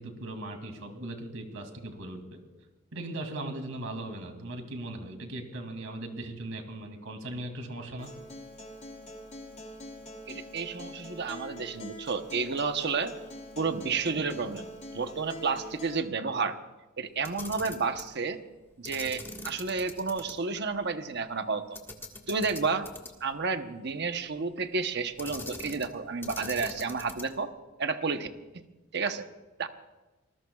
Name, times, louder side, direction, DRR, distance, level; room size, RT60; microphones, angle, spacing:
voice 1, 0.0-2.4 2.9-8.1, right 1 dB, 80° right, 4 dB, 2.6 m, -38 dB
Acoustic guitar, 8.0-16.0, left 1 dB, 35° left, 2.6 m, -44 dB
voice 2, 10.3-13.1 13.6-16.6 17.0-18.4 18.8-21.8 22.3-22.9 23.2-27.5 27.8-28.3 28.5-28.7 28.9-29.2 29.6-29.7, right 4 dB, 55° right, 8 dB, 1.0 m, -31 dB
Camera, 17.2-18.1 18.8-20.3 20.7-20.8 21.7-23.3 25.2-25.9 26.2-27.4, left 2 dB, 10° left, 1.6 m, -42 dB
25.5 x 20.5 x 2.4 m, 1.1 s
head